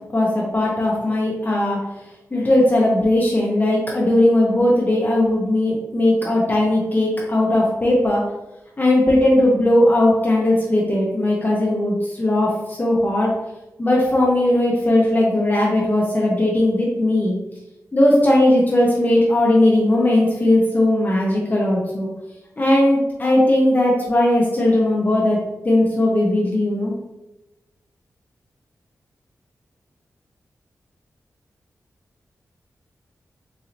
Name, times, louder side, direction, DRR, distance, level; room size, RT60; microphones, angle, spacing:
voice 1, 0.1-1.8 2.3-8.2 8.8-13.3 13.8-17.3 17.9-22.1 22.6-25.4 25.6-26.9, left 1 dB, 30° left, -4 dB, 0.7 m, -18 dB
4.0 x 2.8 x 2.6 m, 0.98 s
cardioid pair, 60°, 6 cm